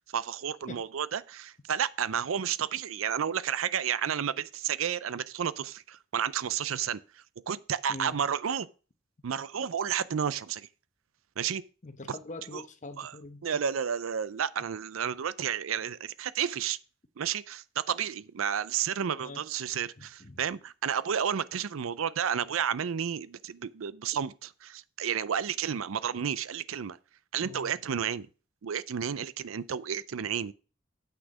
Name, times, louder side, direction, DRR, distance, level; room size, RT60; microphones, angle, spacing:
voice 1, 0.0-8.7 9.2-10.7 11.4-11.6 12.5-12.6 13.0-13.2 13.4-16.8 17.2-27.0 27.3-28.3 28.6-30.5, right 8 dB, 80° right, 0.5 m, -31 dB
voice 2, 11.8-13.6 19.2-19.4 20.0-20.4 27.4-27.7, left 2 dB, 40° left, 0.9 m, -44 dB
8.3 x 6.3 x 4.9 m
head